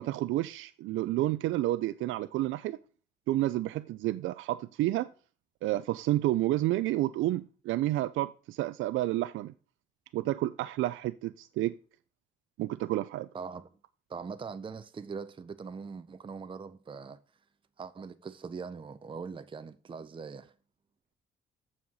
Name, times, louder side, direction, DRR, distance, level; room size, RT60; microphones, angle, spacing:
voice 1, 0.0-2.8 3.3-5.1 5.6-9.5 10.1-11.7 12.6-13.3, right 15 dB, 80° right, 0.4 m, -30 dB
voice 2, 13.3-13.7 14.1-17.2 17.8-20.5, right 5 dB, 25° right, 0.6 m, -41 dB
7.2 x 5.6 x 6.2 m
cardioid pair, 90°, 20 cm